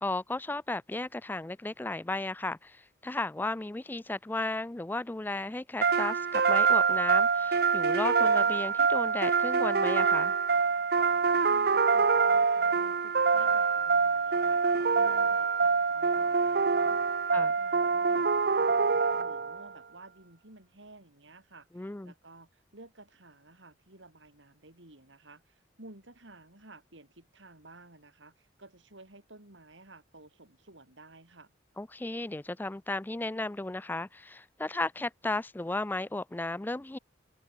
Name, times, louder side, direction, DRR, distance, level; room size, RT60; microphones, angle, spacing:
voice 1, 0.0-10.3 17.3-17.5 21.8-22.1 31.8-37.0, left 2 dB, 10° left, 0.3 m, -34 dB
sound 1, 5.8-19.7, right 5 dB, 55° right, 0.7 m, -25 dB
voice 2, 11.5-14.6 14.9-31.5, right 2 dB, 80° right, 6.1 m, -54 dB
head